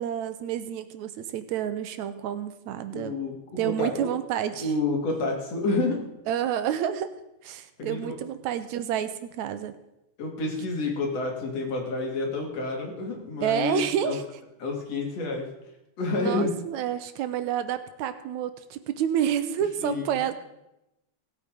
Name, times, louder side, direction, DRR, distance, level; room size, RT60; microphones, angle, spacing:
voice 1, 0.0-3.2 3.6-4.7 6.3-7.1 7.4-9.7 13.4-14.2 16.1-20.3, right 10 dB, 80° right, 11 dB, 2.1 m, -29 dB
voice 2, 2.9-4.1 4.6-6.0 7.8-8.1 10.2-14.2 14.6-15.5 16.0-16.5 19.8-20.1, left 3 dB, 60° left, 1 dB, 3.3 m, -29 dB
17.0 x 8.2 x 5.1 m, 0.89 s
omnidirectional pair, 3.3 m